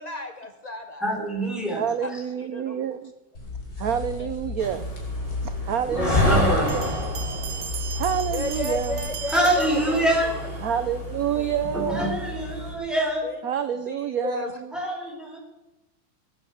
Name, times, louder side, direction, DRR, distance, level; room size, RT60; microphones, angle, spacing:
voice 1, 0.0-1.0 2.0-2.1 2.5-2.8 4.2-4.3 8.3-10.5 13.2-13.4 13.9-14.5, left 2 dB, 65° left, 7 dB, 0.4 m, -33 dB
voice 2, 1.0-1.8 5.9-6.7 9.3-10.3 11.7-13.3 14.7-15.4, right 1 dB, ahead, -1 dB, 4.3 m, -25 dB
voice 3, 1.7-3.1 3.8-4.9 5.4-6.9 7.9-9.0 10.6-12.2 13.4-14.7, right 8 dB, 60° right, 11 dB, 1.0 m, -28 dB
sound 1, 3.3-9.1, left 2 dB, 45° left, 3.7 m, -34 dB
sound 2, 4.6-12.7, left 2 dB, 15° left, 5.5 m, -29 dB
Bell, 6.7-10.5, right 8 dB, 80° right, 2.2 m, -37 dB
18.5 x 8.6 x 8.0 m, 0.95 s
omnidirectional pair, 2.2 m